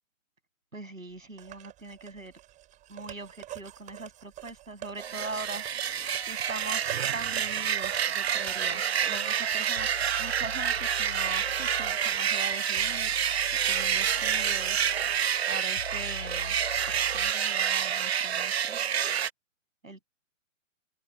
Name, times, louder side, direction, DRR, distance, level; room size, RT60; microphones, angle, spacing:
voice 1, 0.7-2.3 2.9-5.7 6.2-9.9 10.2-13.2 13.7-16.6 16.9-18.8 19.8-20.0, right 3 dB, 80° right, 7.5 m, -41 dB
sound 1, 1.4-8.6, right 13 dB, 20° right, 7.2 m, -45 dB
sound 2, 5.0-19.3, right 8 dB, 50° right, 1.5 m, -28 dB
sound 3, 8.6-17.3, left 4 dB, 70° left, 1.8 m, -44 dB
open air
figure-of-eight pair, 125°, 39 cm